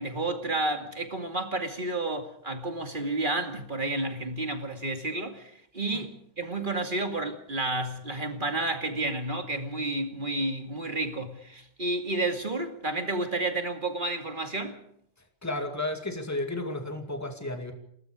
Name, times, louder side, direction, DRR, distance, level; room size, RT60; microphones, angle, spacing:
voice 1, 0.0-14.8, right 2 dB, 45° right, 2.7 m, -31 dB
voice 2, 15.4-17.7, left 2 dB, 15° left, 2.4 m, -33 dB
29.0 x 19.0 x 5.1 m
omnidirectional pair, 1.2 m